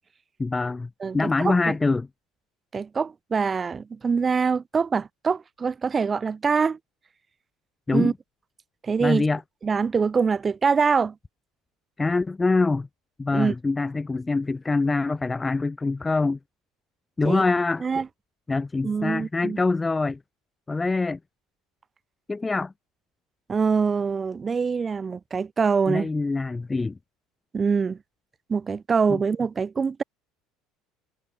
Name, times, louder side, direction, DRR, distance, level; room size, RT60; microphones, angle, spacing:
voice 1, 0.4-2.1 7.9-8.1 9.0-9.4 12.0-12.9 13.2-16.4 17.2-17.8 18.5-20.2 20.7-21.2 22.3-22.7 25.9-27.0 29.1-29.2, left 3 dB, 15° left, 0.4 m, -24 dB
voice 2, 1.0-1.5 2.7-6.8 7.9-8.1 8.8-9.2 9.6-11.1 13.3-13.6 17.2-17.4 17.8-18.1 18.8-19.6 23.5-26.1 27.5-28.0 28.5-30.0, right 5 dB, 25° right, 2.4 m, -24 dB
supercardioid pair, 100°, 0 cm